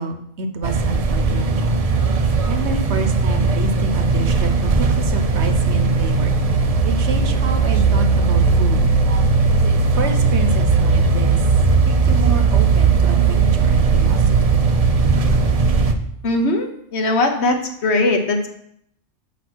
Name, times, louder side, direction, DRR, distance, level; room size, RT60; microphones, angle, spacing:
voice 1, 0.0-1.8 2.1-6.3 6.8-8.9 9.9-11.4 11.8-14.2, right 3 dB, 70° right, 6 dB, 1.1 m, -28 dB
sound 1, 0.6-15.9, right 4 dB, 45° right, 0.5 m, -17 dB
voice 2, 16.2-18.5, left 2 dB, 65° left, 5 dB, 1.2 m, -20 dB
6.1 x 5.1 x 6.2 m, 0.71 s
omnidirectional pair, 1.2 m